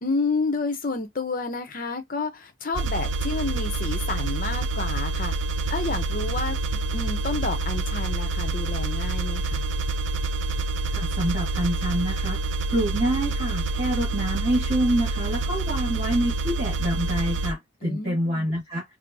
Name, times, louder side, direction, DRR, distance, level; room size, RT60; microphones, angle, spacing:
voice 1, 0.0-5.3 5.7-9.7 17.8-18.5, left 3 dB, 40° left, 0.7 m, -30 dB
sound 1, 2.7-17.5, right 3 dB, 60° right, 0.4 m, -27 dB
voice 2, 10.9-12.4 12.7-18.8, right 1 dB, 30° right, 1.6 m, -26 dB
5.0 x 2.0 x 2.7 m
head